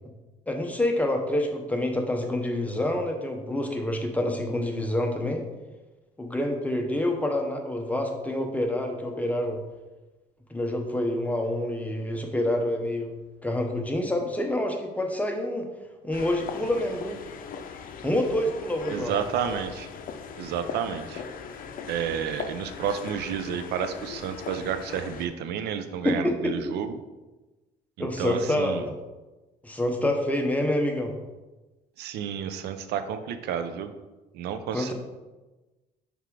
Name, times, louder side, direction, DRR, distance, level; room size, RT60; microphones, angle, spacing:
voice 1, 0.5-5.4 6.2-9.6 10.5-13.1 13.4-15.7 16.0-17.2 18.0-19.1 26.0-26.5 28.0-29.0 29.6-31.1 34.7-34.9, left 1 dB, 10° left, 3 dB, 0.8 m, -27 dB
sound 1, 16.1-25.3, left 6 dB, 55° left, 0.6 m, -39 dB
voice 2, 18.9-19.9 20.4-21.2 21.9-26.9 28.0-28.9 32.0-33.9 34.3-34.9, right 8 dB, 75° right, 10 dB, 0.5 m, -31 dB
5.8 x 3.5 x 4.6 m, 1.1 s
cardioid pair, 110°, 17 cm